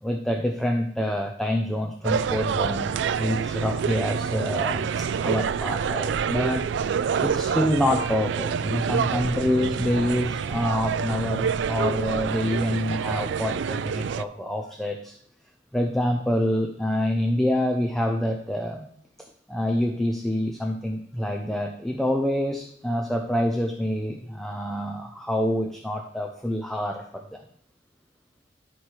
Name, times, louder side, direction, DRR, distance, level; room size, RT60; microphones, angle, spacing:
voice 1, 0.0-6.7 7.2-15.1 15.7-18.9 19.5-27.4, left 1 dB, ahead, 2 dB, 0.5 m, -26 dB
sound 1, 2.0-14.2, right 6 dB, 70° right, 0.3 m, -27 dB
11.0 x 4.4 x 4.7 m, 0.66 s
head